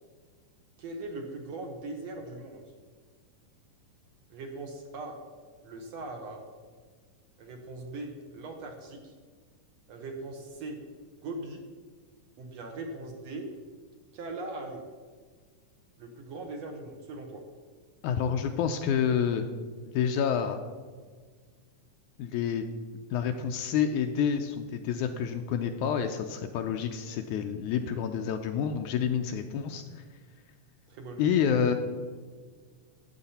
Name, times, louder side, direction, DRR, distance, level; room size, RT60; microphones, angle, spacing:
voice 1, 0.8-2.7 4.3-5.1 5.6-6.4 7.4-9.1 9.9-10.8 11.2-11.6 12.4-13.5 14.1-14.8 16.0-17.4 30.9-31.4, right 2 dB, 65° right, 2 dB, 1.9 m, -40 dB
voice 2, 18.0-19.5 19.9-20.6 22.2-22.7 23.1-30.0 31.2-31.7, left 7 dB, 80° left, 6 dB, 1.9 m, -28 dB
12.5 x 8.3 x 4.3 m, 1.5 s
omnidirectional pair, 3.8 m